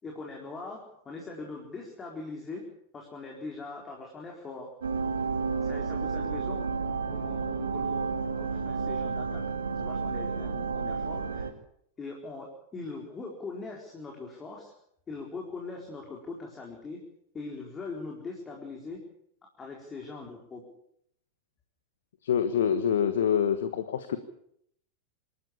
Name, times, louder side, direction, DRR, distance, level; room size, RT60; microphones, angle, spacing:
voice 1, 0.0-2.6 2.9-4.7 5.6-9.4 9.7-11.5 12.0-14.7 15.1-17.0 17.3-19.0 19.6-20.6, left 3 dB, 20° left, 0 dB, 4.4 m, -41 dB
sound 1, 4.8-11.5, right 4 dB, 70° right, 2.0 m, -31 dB
voice 2, 22.2-24.2, left 8 dB, 60° left, 11 dB, 1.4 m, -26 dB
27.0 x 12.5 x 8.6 m, 0.71 s
figure-of-eight pair, 90°, 0 cm